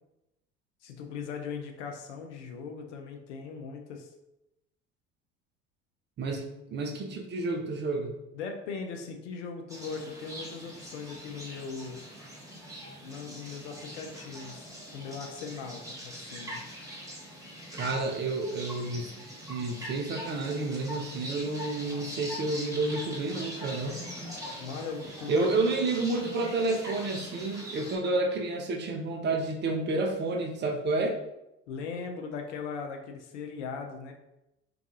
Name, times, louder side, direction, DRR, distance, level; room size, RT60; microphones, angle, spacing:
voice 1, 0.8-4.1 8.3-12.0 13.0-14.7 14.9-16.6 24.6-25.7 31.7-34.1, left 5 dB, 75° left, 3 dB, 0.5 m, -39 dB
voice 2, 6.2-8.1 17.7-19.1 19.5-24.0 25.3-31.2, right 3 dB, 30° right, 2 dB, 0.5 m, -30 dB
sound 1, 9.7-28.0, equal, 10° right, 0.9 m, -42 dB
2.4 x 2.3 x 2.7 m, 0.89 s
figure-of-eight pair, 60°, 36 cm